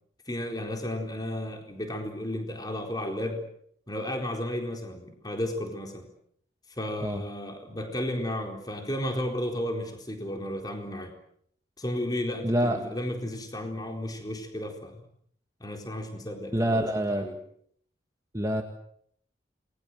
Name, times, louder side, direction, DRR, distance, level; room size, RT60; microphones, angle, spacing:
voice 1, 0.3-3.4 3.9-6.1 6.8-11.1 11.8-15.0 15.6-17.3, left 1 dB, 20° left, 4 dB, 4.2 m, -33 dB
voice 2, 12.4-12.8 16.5-17.3 18.3-18.6, right 1 dB, 15° right, 4 dB, 1.8 m, -26 dB
28.5 x 21.5 x 7.8 m, 0.66 s
head